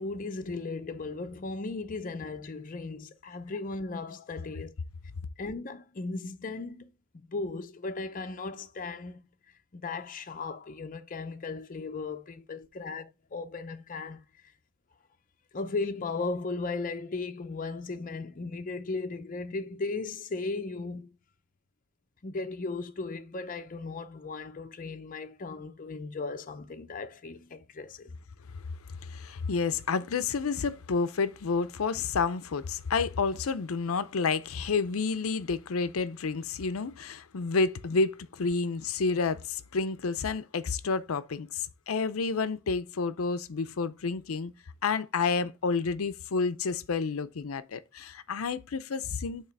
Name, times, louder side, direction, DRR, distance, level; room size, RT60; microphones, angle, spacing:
voice 1, 0.0-4.7 5.4-9.2 9.7-14.2 15.5-21.1 22.2-28.1, left 3 dB, 40° left, 0.6 m, -36 dB
voice 2, 29.0-44.5 44.8-49.5, left 4 dB, 90° left, 0.6 m, -30 dB
7.3 x 3.0 x 5.8 m
head